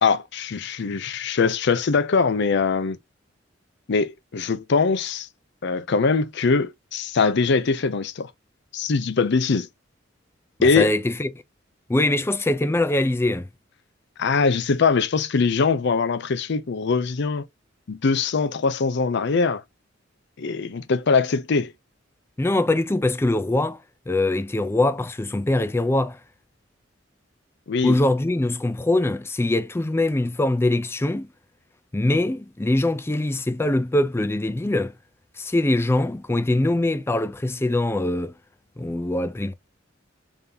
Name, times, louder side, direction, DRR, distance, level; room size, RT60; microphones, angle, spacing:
voice 1, 0.0-3.0 3.9-5.3 5.6-8.3 8.7-9.7 10.6-10.9 14.2-17.4 17.9-19.6 20.4-21.7 27.7-28.0, left 4 dB, 60° left, 0.5 m, -22 dB
voice 2, 10.6-11.3 11.9-13.5 22.4-23.8 24.1-26.2 27.8-31.3 31.9-34.9 35.4-38.3 38.8-39.5, left 1 dB, 15° left, 0.4 m, -23 dB
3.6 x 2.8 x 3.5 m
head